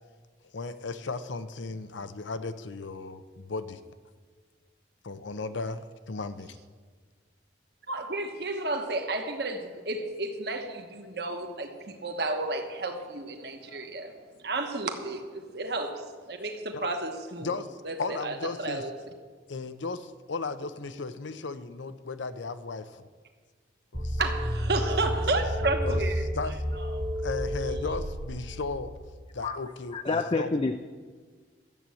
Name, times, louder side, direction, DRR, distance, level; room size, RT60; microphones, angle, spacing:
voice 1, 0.5-3.8 5.0-6.6 11.0-11.2 12.0-12.1 13.7-13.9 16.7-16.9 17.4-18.8 19.5-23.1 23.9-24.2 24.7-24.8 25.8-26.0 26.3-26.6 27.2-28.9 29.3-30.6, left 4 dB, 85° left, 12 dB, 0.7 m, -36 dB
voice 2, 7.9-14.1 14.4-16.0 16.3-17.5 17.8-18.9 24.2-26.2 26.8-27.0, right 2 dB, 60° right, 4 dB, 1.2 m, -32 dB
sound 1, 23.9-28.9, equal, 20° right, 1.0 m, -31 dB
voice 3, 29.9-30.8, left 3 dB, 30° left, 8 dB, 0.4 m, -28 dB
12.5 x 7.6 x 8.5 m, 1.5 s
head